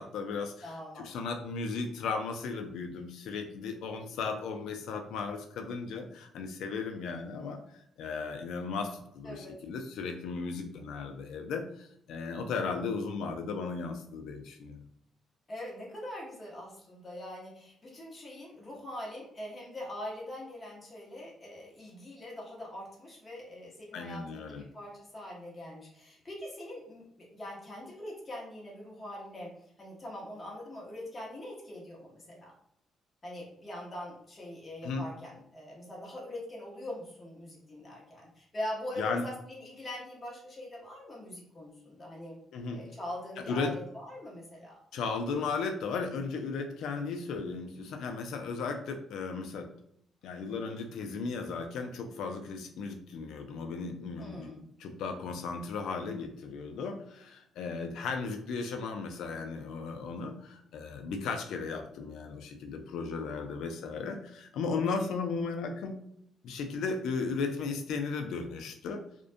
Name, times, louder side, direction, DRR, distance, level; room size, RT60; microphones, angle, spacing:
voice 1, 0.0-14.8 23.9-24.6 34.8-35.0 39.0-39.2 42.5-42.8 43.5-43.7 44.9-49.7 50.2-65.9 66.4-69.0, left 4 dB, 80° left, 5 dB, 0.3 m, -36 dB
voice 2, 0.6-1.1 9.2-9.5 15.5-27.0 27.3-32.5 33.2-42.4 42.7-44.8 54.2-54.6, left 1 dB, 30° left, -4 dB, 0.9 m, -42 dB
2.4 x 2.1 x 2.5 m, 0.71 s
cardioid pair, 90°, 0 cm